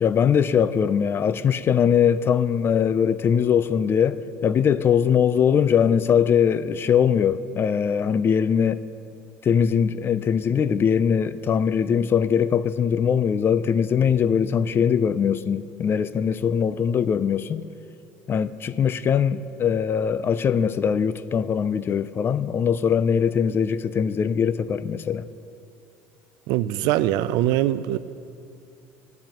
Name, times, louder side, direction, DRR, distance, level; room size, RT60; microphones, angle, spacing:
voice 1, 0.0-8.8 9.4-17.7 18.3-25.3, left 7 dB, 35° left, 0.4 m, -21 dB
voice 2, 26.5-28.0, right 13 dB, 70° right, 0.4 m, -22 dB
20.0 x 10.5 x 3.0 m
supercardioid pair, 115°, 7 cm